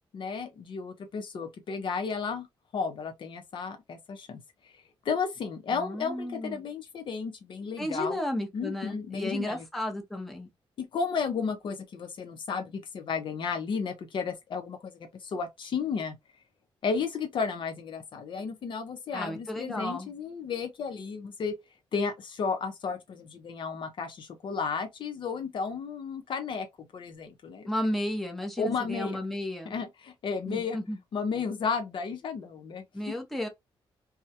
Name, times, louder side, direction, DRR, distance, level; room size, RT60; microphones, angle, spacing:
voice 1, 0.1-2.5 2.7-4.4 5.0-8.2 8.5-9.6 10.8-16.2 16.8-21.5 21.9-27.6 28.6-29.2 29.7-30.8 31.1-33.1, left 5 dB, 60° left, 0.5 m, -33 dB
voice 2, 5.7-6.6 7.8-10.5 19.1-20.1 27.7-29.7 30.5-31.0 32.9-33.5, left 1 dB, ahead, 0.6 m, -33 dB
2.3 x 2.0 x 2.7 m
wide cardioid pair, 130°, 10 cm